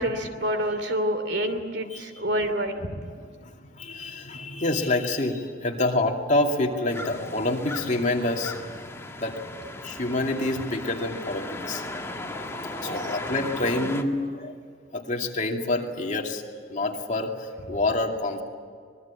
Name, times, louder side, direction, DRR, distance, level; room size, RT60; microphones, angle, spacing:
voice 1, 0.0-3.1 12.8-13.1, equal, 75° right, 9 dB, 2.9 m, -28 dB
voice 2, 3.4-8.7 9.2-9.4 9.8-11.8 12.8-14.5 14.9-16.4 16.7-18.4, left 2 dB, 45° left, 1 dB, 2.5 m, -27 dB
sound 1, 6.9-14.0, left 2 dB, 15° left, 1.7 m, -36 dB
25.5 x 21.0 x 8.5 m, 2.1 s
head